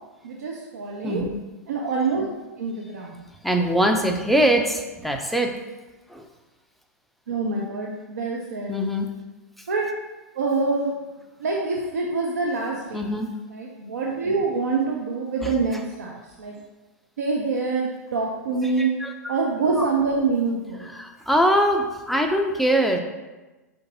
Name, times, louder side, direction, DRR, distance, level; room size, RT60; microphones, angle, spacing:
voice 1, 0.2-1.3 1.7-2.3 2.6-3.2 7.3-8.8 9.7-9.9 10.3-10.9 11.4-13.1 13.5-16.6 17.2-19.0 19.3-20.9, right 4 dB, 70° right, -1 dB, 0.5 m, -26 dB
voice 2, 3.4-5.5 6.1-6.2 8.7-9.1 12.9-13.3 18.8-19.1 19.8-19.9 21.0-23.0, equal, ahead, 4 dB, 0.3 m, -22 dB
4.4 x 2.6 x 3.9 m, 1.1 s
figure-of-eight pair, 100°, 9 cm